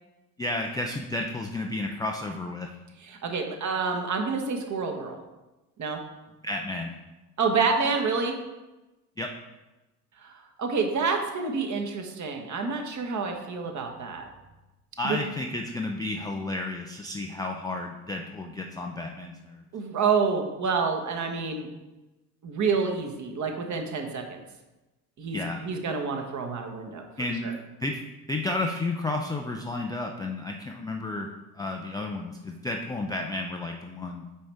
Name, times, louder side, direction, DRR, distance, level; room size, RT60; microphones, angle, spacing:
voice 1, 0.4-2.7 6.4-6.9 9.2-9.3 15.0-19.6 25.3-25.6 27.2-27.5 27.8-28.0 28.3-31.3 31.5-34.2, left 2 dB, 10° left, 2 dB, 0.4 m, -32 dB
voice 2, 3.0-5.2 5.8-6.0 7.4-8.4 10.2-10.3 10.6-14.2 15.0-15.2 19.7-21.7 22.4-24.2 25.2-27.0 27.4-27.5, right 5 dB, 35° right, 3 dB, 1.2 m, -28 dB
8.3 x 5.0 x 3.4 m, 1.1 s
figure-of-eight pair, 55°, 49 cm